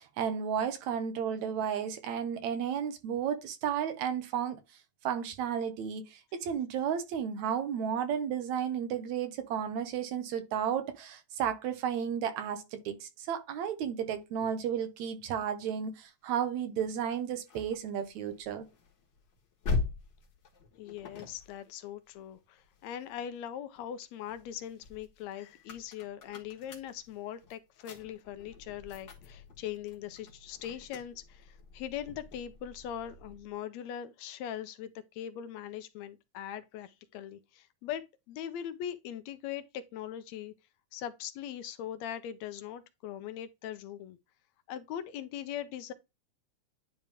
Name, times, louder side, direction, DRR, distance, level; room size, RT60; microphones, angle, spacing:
voice 1, 0.0-4.6 5.0-18.7, right 8 dB, 75° right, 2.3 m, -33 dB
sound 1, 16.8-23.3 23.8-33.6, left 3 dB, 45° left, 1.9 m, -42 dB
voice 2, 20.8-40.5 40.9-44.2 44.7-45.9, left 10 dB, 75° left, 1.8 m, -41 dB
10.0 x 3.4 x 3.4 m
omnidirectional pair, 3.3 m